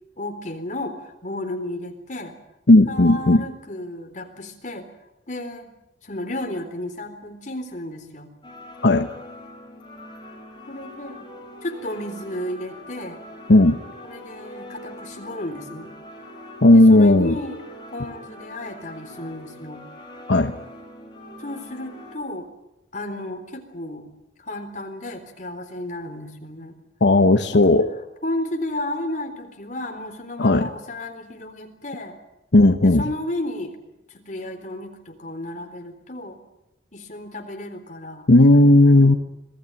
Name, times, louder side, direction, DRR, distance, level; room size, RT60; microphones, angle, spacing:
voice 1, 0.2-2.3 2.9-4.9 5.3-5.7 6.0-8.3 10.7-11.3 11.6-13.2 14.0-15.9 16.7-17.6 17.9-19.8 21.4-22.5 22.9-24.1 24.4-26.8 27.5-27.7 28.2-32.2 32.8-33.7 34.1-36.4 36.9-38.3 39.0-39.2, left 1 dB, 45° left, 5 dB, 3.8 m, -33 dB
voice 2, 2.7-3.4 8.8-9.1 13.5-13.8 16.6-17.3 20.3-20.5 27.0-27.9 30.4-30.7 32.5-33.0 38.3-39.2, left 2 dB, 80° left, 6 dB, 1.1 m, -14 dB
sound 1, 8.4-22.2, left 1 dB, 25° left, 5.6 m, -42 dB
26.0 x 18.0 x 9.1 m, 0.90 s
head